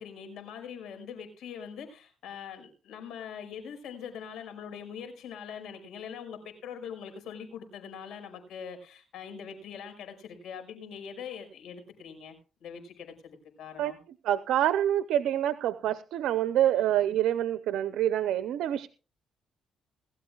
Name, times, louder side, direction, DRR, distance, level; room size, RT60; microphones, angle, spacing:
voice 1, 0.0-14.0, left 7 dB, 80° left, 7 dB, 5.4 m, -43 dB
voice 2, 14.2-18.9, right 11 dB, 80° right, 12 dB, 0.6 m, -26 dB
20.5 x 13.0 x 2.4 m, 0.33 s
cardioid pair, 90°, 0 cm